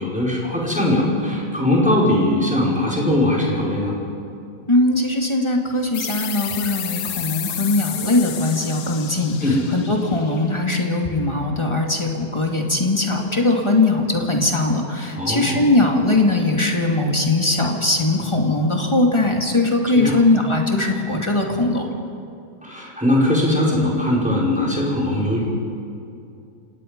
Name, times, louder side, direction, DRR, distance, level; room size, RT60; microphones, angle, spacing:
voice 1, 0.0-3.9 9.4-9.7 15.1-15.7 19.9-20.2 22.6-25.4, left 1 dB, 5° right, -4 dB, 5.0 m, -20 dB
voice 2, 4.7-21.9, left 2 dB, 15° left, 1 dB, 2.2 m, -20 dB
sound 1, 5.9-11.2, left 9 dB, 55° left, 1.2 m, -32 dB
29.5 x 18.0 x 5.3 m, 2.6 s
omnidirectional pair, 2.0 m